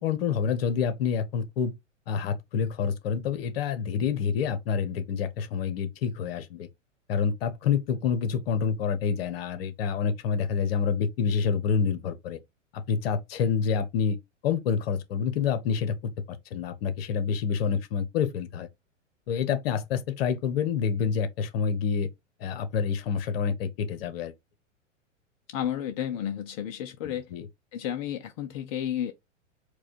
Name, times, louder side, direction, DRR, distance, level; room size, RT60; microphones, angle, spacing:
voice 1, 0.0-1.7 2.1-6.7 7.1-12.4 12.7-14.2 14.4-16.1 16.5-18.7 19.3-22.1 22.4-24.3 27.0-27.5, left 6 dB, 50° left, 1.0 m, -27 dB
voice 2, 25.5-27.3 27.7-29.1, left 10 dB, 30° left, 0.4 m, -32 dB
4.7 x 2.3 x 4.2 m
figure-of-eight pair, 100°, 38 cm